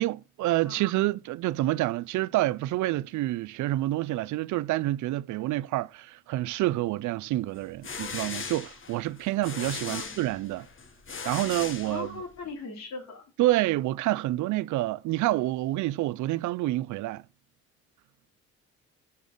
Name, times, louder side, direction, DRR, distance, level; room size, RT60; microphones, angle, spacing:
voice 1, 0.0-10.7 11.2-12.1 13.4-17.2, right 16 dB, 75° right, 0.5 m, -28 dB
sound 1, 7.6-12.4, left 5 dB, 40° left, 1.6 m, -38 dB
voice 2, 11.8-13.2, left 3 dB, 60° left, 3.3 m, -39 dB
6.3 x 5.5 x 6.7 m
cardioid pair, 90°, 30 cm